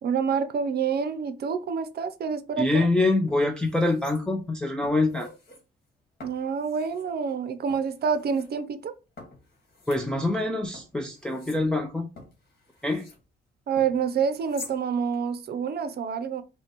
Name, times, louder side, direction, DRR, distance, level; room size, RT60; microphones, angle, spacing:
voice 1, 0.0-2.9 6.2-8.9 13.7-16.4, right 6 dB, 55° right, 0.6 m, -27 dB
voice 2, 2.6-5.3 9.9-12.1 12.8-13.1, left 2 dB, 5° left, 0.5 m, -25 dB
sound 1, 2.7-2.9 3.3-4.5 4.8-5.6 6.2-7.1 7.7-8.5 9.2-10.4 10.7-13.2 13.8-14.8 15.1-15.2, left 3 dB, 50° left, 1.7 m, -47 dB
5.7 x 2.3 x 3.0 m
cardioid pair, 90°, 20 cm